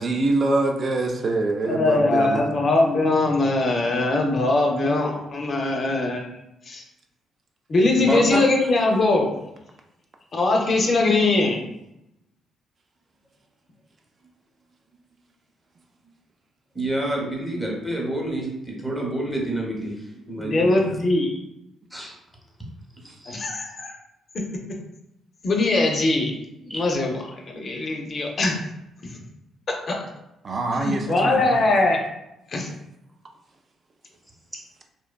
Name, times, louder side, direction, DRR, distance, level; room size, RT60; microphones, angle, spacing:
voice 1, 0.0-2.4 30.4-31.7, right 2 dB, 45° right, 2 dB, 0.3 m, -24 dB
voice 2, 1.6-6.3 6.7-6.8 7.7-9.3 10.3-11.6 20.4-21.4 23.3-23.9 25.4-26.3 26.7-27.2 27.5-28.6 29.9-30.0 30.7-32.0 32.5-32.7, left 2 dB, 45° left, 1 dB, 0.4 m, -21 dB
voice 3, 8.0-8.4 16.7-19.9 20.2-21.0 21.9-22.1 23.2-23.4 26.7-26.8, right 1 dB, 5° right, -2 dB, 0.7 m, -28 dB
2.5 x 2.2 x 2.2 m, 0.87 s
cardioid pair, 90°, 0 cm